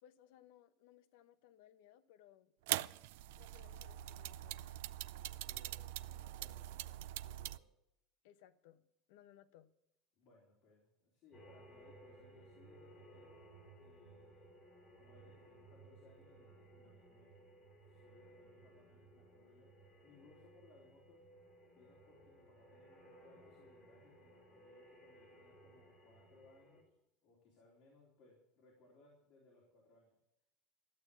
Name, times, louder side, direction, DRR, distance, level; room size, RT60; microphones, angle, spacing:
voice 1, 0.0-2.5 3.3-4.8 8.2-9.7, left 11 dB, 80° left, 10 dB, 1.0 m, -64 dB
sound 1, 2.7-7.6, right 15 dB, 85° right, 0.4 m, -43 dB
voice 2, 5.1-7.7 10.2-13.5 13.8-14.5 15.0-17.4 17.8-21.2 21.7-26.9 27.2-30.1, left 3 dB, 35° left, -3 dB, 3.9 m, -66 dB
sound 2, 11.3-26.8, right 1 dB, 20° left, 5.0 m, -60 dB
14.0 x 8.8 x 8.4 m, 0.84 s
cardioid pair, 175°, 0 cm